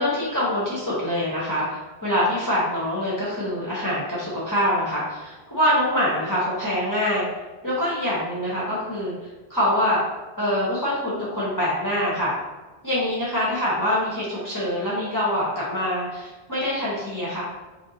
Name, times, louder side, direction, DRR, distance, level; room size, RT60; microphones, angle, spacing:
voice 1, 0.0-7.3 7.6-9.1 9.5-10.0 10.4-12.3 12.8-17.4, left 1 dB, 20° left, -8 dB, 0.8 m, -24 dB
3.1 x 2.6 x 3.9 m, 1.2 s
omnidirectional pair, 1.1 m